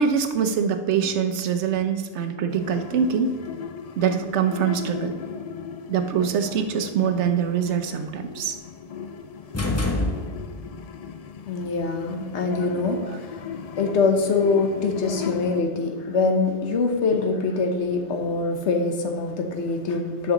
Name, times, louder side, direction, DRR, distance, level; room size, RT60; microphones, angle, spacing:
voice 1, 0.0-3.4 4.0-5.2 5.9-8.6 13.0-13.2, right 7 dB, 85° right, 8 dB, 1.0 m, -24 dB
sound 1, 2.5-15.6, left 7 dB, 60° left, 0.4 m, -37 dB
sound 2, 9.5-10.8, left 2 dB, 15° left, 0.6 m, -26 dB
voice 2, 11.4-13.4 13.8-20.3, left 4 dB, 80° left, 5 dB, 1.2 m, -24 dB
9.9 x 6.1 x 3.8 m, 1.4 s
omnidirectional pair, 1.2 m